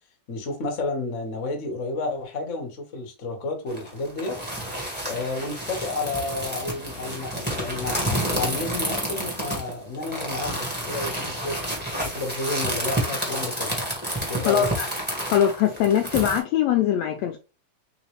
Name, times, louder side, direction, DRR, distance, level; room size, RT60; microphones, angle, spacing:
voice 1, 0.3-4.4 5.0-11.7 12.0-13.7 14.3-14.7, left 3 dB, 55° left, 0.8 m, -31 dB
sound 1, 3.7-16.4, equal, 5° right, 0.8 m, -30 dB
voice 2, 14.4-14.9 15.3-17.4, left 10 dB, 80° left, 1.6 m, -22 dB
4.1 x 3.9 x 3.1 m
omnidirectional pair, 3.5 m